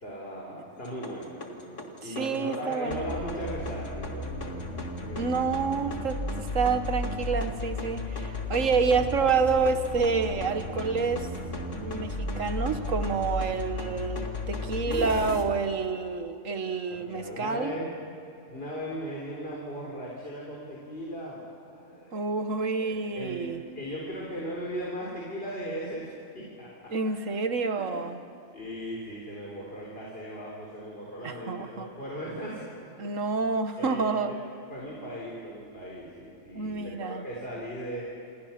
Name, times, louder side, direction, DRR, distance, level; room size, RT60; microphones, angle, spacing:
voice 1, 0.0-5.4 14.7-15.4 16.9-18.0 18.5-22.2 22.8-23.5 23.7-26.9 27.8-28.1 28.5-33.2 33.8-34.4 34.7-38.0, equal, 50° left, -4 dB, 4.4 m, -38 dB
sound 1, 0.7-15.4, left 1 dB, 70° left, 2.6 m, -34 dB
voice 2, 2.0-3.1 5.2-11.3 11.7-17.8 22.1-23.6 26.9-28.2 31.2-31.9 33.0-34.3 36.6-37.2, right 4 dB, 80° right, 8 dB, 1.8 m, -28 dB
28.0 x 27.5 x 6.0 m, 2.8 s
omnidirectional pair, 1.3 m